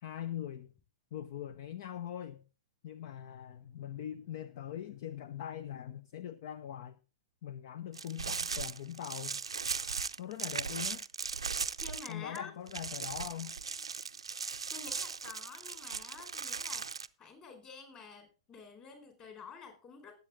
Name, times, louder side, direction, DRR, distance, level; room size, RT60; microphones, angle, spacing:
voice 1, 0.0-0.7 1.1-2.4 2.8-7.0 7.4-9.4 10.2-11.0 12.1-13.6, left 10 dB, 50° left, 0.7 m, -42 dB
sound 1, 7.9-12.4 12.7-17.1, right 5 dB, 75° right, 0.5 m, -38 dB
voice 2, 11.8-12.5 14.7-16.8 17.2-20.2, left 5 dB, 25° left, 4.1 m, -49 dB
18.5 x 8.1 x 3.6 m
figure-of-eight pair, 105°, 3 cm